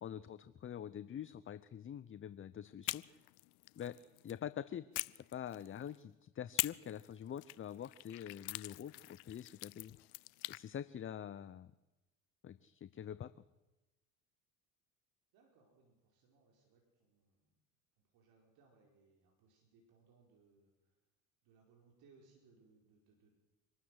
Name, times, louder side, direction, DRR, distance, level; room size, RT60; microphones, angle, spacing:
voice 1, 0.0-3.0 3.8-3.9 4.2-4.8 5.2-10.1 10.5-11.7 12.4-13.3, left 9 dB, 30° left, 15 dB, 0.7 m, -45 dB
sound 1, 2.8-4.4 4.9-6.0 6.6-10.6, left 25 dB, 70° left, 0.7 m, -44 dB
voice 2, 15.3-17.5 18.1-20.7 21.4-23.3, right 4 dB, 65° right, 0 dB, 4.9 m, -68 dB
25.5 x 13.0 x 8.1 m, 1.1 s
hypercardioid pair, 75°, 40 cm